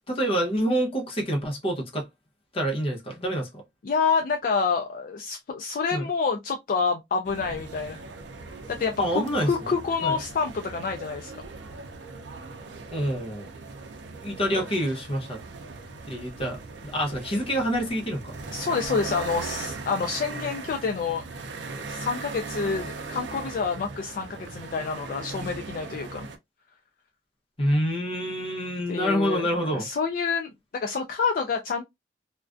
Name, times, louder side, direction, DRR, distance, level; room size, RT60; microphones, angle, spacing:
voice 1, 0.1-2.1 2.5-3.5 5.9-6.0 9.0-9.5 10.0-10.1 12.9-13.5 14.2-15.4 16.1-18.3 27.6-29.9, equal, 30° left, 0.7 m, -27 dB
voice 2, 3.8-8.0 8.7-11.4 14.5-14.6 18.5-21.2 21.9-26.3 28.9-31.8, left 5 dB, 50° left, 0.3 m, -28 dB
sound 1, 7.2-26.4, right 3 dB, 85° right, 0.5 m, -39 dB
2.4 x 2.1 x 2.4 m
head